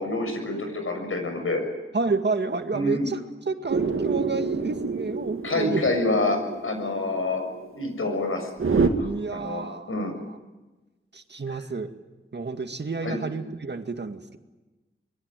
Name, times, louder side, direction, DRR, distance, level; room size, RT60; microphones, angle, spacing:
voice 1, 0.0-1.6 2.7-3.1 5.4-7.5 7.8-8.5 8.8-10.1 11.5-11.6 13.0-13.2, left 2 dB, 80° left, 5 dB, 7.1 m, -27 dB
voice 2, 1.9-5.9 9.0-10.0 10.2-10.4 11.1-11.9 12.3-14.4, right 4 dB, 55° right, 7 dB, 2.0 m, -30 dB
sound 1, 3.7-8.9, right 4 dB, 80° right, 2.1 m, -28 dB
25.5 x 22.0 x 9.1 m, 1.1 s
wide cardioid pair, 85°, 21 cm